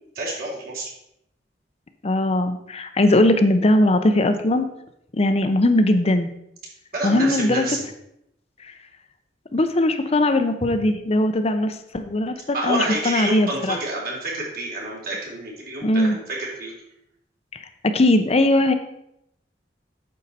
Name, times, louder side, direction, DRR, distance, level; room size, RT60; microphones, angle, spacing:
voice 1, 0.1-0.9 6.9-7.8 12.5-16.7, right 2 dB, 55° right, -3 dB, 3.3 m, -28 dB
voice 2, 2.0-4.7 5.1-6.3 7.0-7.7 8.6-8.7 9.5-13.8 15.8-16.2 17.5-18.7, left 1 dB, 35° left, 8 dB, 0.6 m, -20 dB
9.1 x 6.5 x 4.2 m, 0.78 s
head